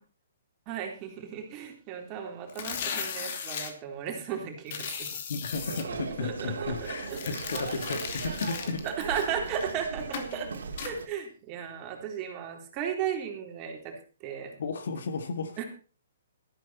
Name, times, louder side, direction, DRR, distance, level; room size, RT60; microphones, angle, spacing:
voice 1, 0.7-5.1 6.2-6.7 7.1-7.2 8.8-10.5 10.8-14.6 15.6-15.7, right 8 dB, 30° right, 3 dB, 3.7 m, -35 dB
sound 1, 2.5-3.7 4.7-5.8 7.0-9.7 10.1-10.3 10.8-10.9, left 7 dB, 50° left, 2.6 m, -37 dB
voice 2, 5.3-8.9 14.6-15.6, left 4 dB, 65° left, 8 dB, 2.1 m, -34 dB
sound 2, 5.5-11.1, right 4 dB, 70° right, 2.7 m, -38 dB
13.5 x 12.0 x 4.3 m, 0.37 s
hypercardioid pair, 130°, 0 cm